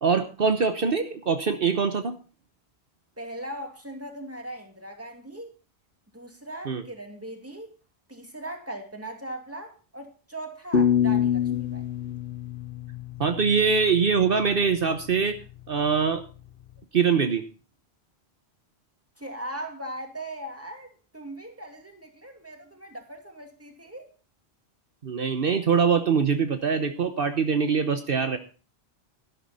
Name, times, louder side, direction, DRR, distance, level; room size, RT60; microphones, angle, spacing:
voice 1, 0.0-2.2 6.7-6.8 13.2-15.4 15.7-16.2 16.9-17.4 25.0-28.4, right 5 dB, 60° right, 8 dB, 1.2 m, -23 dB
voice 2, 3.2-5.5 6.1-7.7 8.1-11.8 19.2-24.1, right 1 dB, 15° right, 4 dB, 2.5 m, -39 dB
sound 1, 10.7-13.7, left 8 dB, 60° left, 1.1 m, -25 dB
13.0 x 11.5 x 4.1 m, 0.35 s
omnidirectional pair, 1.1 m